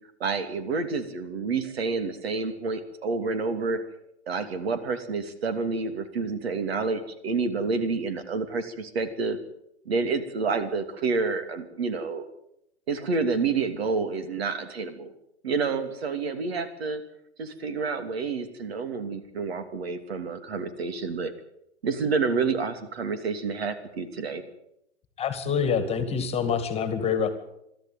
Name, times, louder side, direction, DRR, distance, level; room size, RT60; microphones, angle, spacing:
voice 1, 0.2-3.8 4.3-9.4 9.8-12.3 12.9-15.1 15.4-17.0 17.4-21.3 21.8-24.4, right 4 dB, 65° right, 9 dB, 2.9 m, -29 dB
voice 2, 25.2-27.3, left 6 dB, 20° left, 10 dB, 2.2 m, -26 dB
22.5 x 13.0 x 9.2 m, 0.81 s
hypercardioid pair, 120°, 33 cm